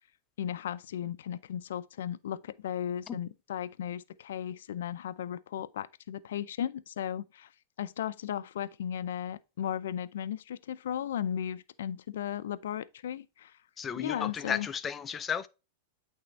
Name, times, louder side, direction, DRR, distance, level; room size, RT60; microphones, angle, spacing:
voice 1, 0.4-7.5 7.8-13.5 13.9-14.7, left 10 dB, 75° left, 0.5 m, -36 dB
voice 2, 13.8-15.5, left 7 dB, 20° left, 0.6 m, -34 dB
8.8 x 3.5 x 4.0 m
hypercardioid pair, 135°, 0 cm